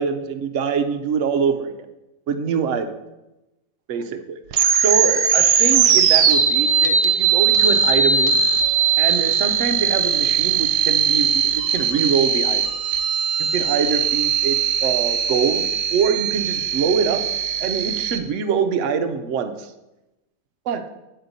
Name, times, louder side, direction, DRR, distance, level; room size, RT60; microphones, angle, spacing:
voice 1, 0.0-1.7 2.3-3.0 3.9-4.4 4.8-8.4 9.0-12.6 13.4-14.6 14.8-17.2 17.6-19.7 20.7-20.8, right 6 dB, 65° right, 7 dB, 0.8 m, -24 dB
sound 1, 4.5-18.2, right 7 dB, 85° right, 1.2 m, -19 dB
9.2 x 4.4 x 4.0 m, 0.98 s
omnidirectional pair, 1.7 m